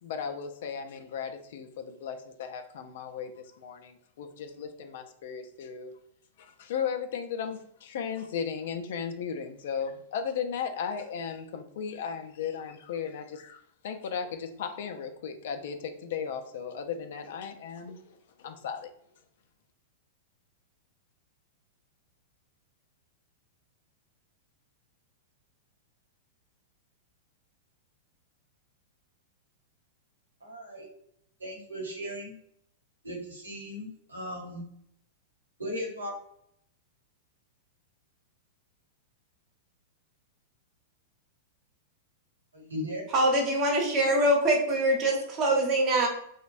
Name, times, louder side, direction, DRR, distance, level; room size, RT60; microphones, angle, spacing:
voice 1, 0.0-5.9 6.4-18.9, left 7 dB, 65° left, 7 dB, 0.4 m, -36 dB
voice 2, 30.4-30.9 31.4-32.3 33.0-34.6 35.6-36.2 42.5-43.1, equal, 90° right, -1 dB, 0.9 m, -37 dB
voice 3, 43.1-46.1, right 1 dB, 35° right, 1 dB, 0.9 m, -24 dB
2.9 x 2.1 x 2.5 m, 0.69 s
hypercardioid pair, 100°, 0 cm